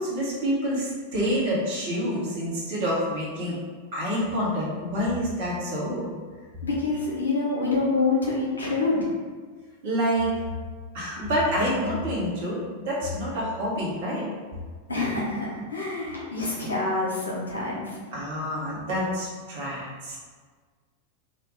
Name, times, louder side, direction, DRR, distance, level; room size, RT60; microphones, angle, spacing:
voice 1, 0.0-3.6 3.9-6.1 9.8-10.3 10.9-14.3 18.1-20.2, equal, 55° right, -6 dB, 1.5 m, -27 dB
voice 2, 6.6-9.1 14.9-18.0, left 3 dB, 75° left, -5 dB, 1.2 m, -26 dB
3.2 x 2.8 x 3.9 m, 1.5 s
figure-of-eight pair, 90°, 0 cm